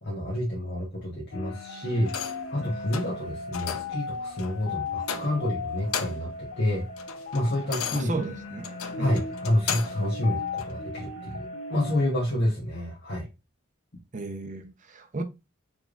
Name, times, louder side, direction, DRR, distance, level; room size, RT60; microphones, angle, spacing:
voice 1, 0.0-6.9 7.3-8.1 9.0-13.3, left 1 dB, 55° left, 1.3 m, -29 dB
sound 1, 1.3-12.1, left 4 dB, 75° left, 1.3 m, -37 dB
sound 2, 2.1-2.5 2.9-3.2 3.5-4.0 4.4-4.6 5.0-5.5 5.8-6.4 6.7-10.1 10.6-10.7, left 8 dB, 90° left, 0.6 m, -35 dB
voice 2, 7.9-9.2 14.1-15.2, right 3 dB, 35° right, 0.7 m, -34 dB
4.9 x 3.5 x 2.4 m
head